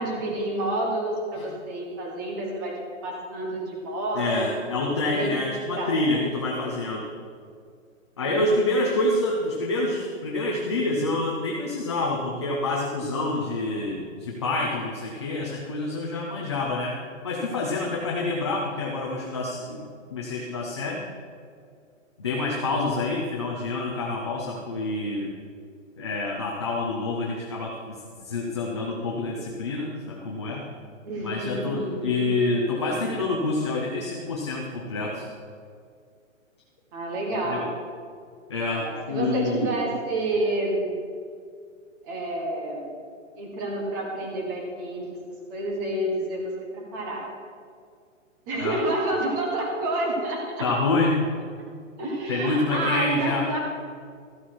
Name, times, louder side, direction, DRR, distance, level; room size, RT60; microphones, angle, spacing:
voice 1, 0.0-2.7 3.0-4.7 5.0-5.3 5.7-6.0 8.2-8.7 31.0-32.2 36.9-37.7 38.7-40.9 42.0-42.9 43.4-45.0 45.5-47.2 48.5-50.6 52.0-53.6, right 1 dB, 15° right, -1 dB, 1.2 m, -29 dB
voice 2, 4.1-7.1 8.2-17.0 17.2-21.0 22.2-25.3 26.0-30.6 31.2-35.3 37.4-37.7 38.5-39.8 48.6-48.8 50.6-51.2 52.3-53.5, left 2 dB, 20° left, -2 dB, 0.6 m, -27 dB
14.0 x 8.2 x 4.6 m, 2.2 s
hypercardioid pair, 175°, 39 cm